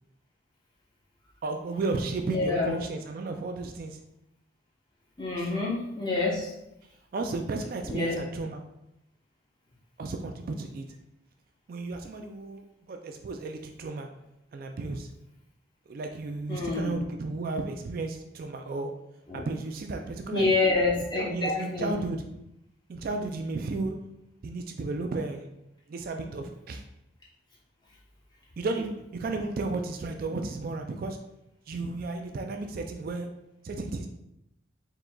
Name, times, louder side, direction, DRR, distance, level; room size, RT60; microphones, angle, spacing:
voice 1, 1.4-4.0 5.4-5.5 7.1-8.6 10.0-10.9 11.7-14.1 14.5-15.1 15.9-18.9 19.3-20.6 21.1-22.3 22.9-24.0 24.4-25.5 25.9-26.8 28.6-31.2 31.7-33.3 33.6-34.1, right 3 dB, 45° right, 5 dB, 0.3 m, -33 dB
voice 2, 2.3-2.8 5.2-6.5 7.9-8.2 16.5-17.0 19.3-19.4 20.3-21.9, left 3 dB, 20° left, -4 dB, 0.9 m, -27 dB
4.7 x 3.8 x 2.2 m, 0.84 s
head